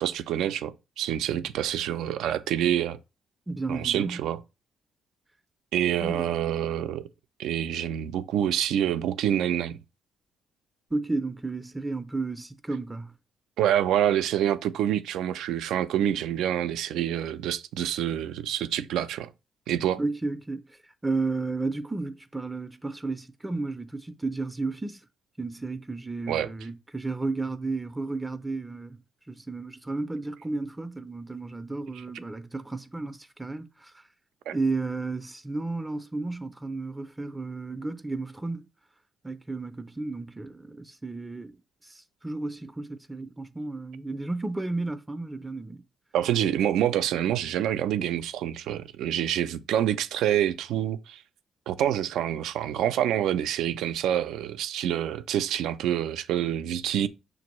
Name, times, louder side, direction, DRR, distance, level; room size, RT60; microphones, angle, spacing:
voice 1, 0.0-3.0 3.7-4.4 5.7-7.1 7.4-9.8 13.6-19.3 19.7-20.0 26.3-26.5 34.5-34.6 46.1-51.2 51.7-57.1, right 10 dB, 85° right, 0.3 m, -27 dB
voice 2, 3.5-4.2 6.0-6.3 10.9-13.1 20.0-25.0 25.4-29.0 29.3-34.0 34.5-38.7 39.2-41.6 41.8-45.8, right 3 dB, 15° right, 0.4 m, -33 dB
6.0 x 2.6 x 3.0 m
cardioid pair, 90°, 0 cm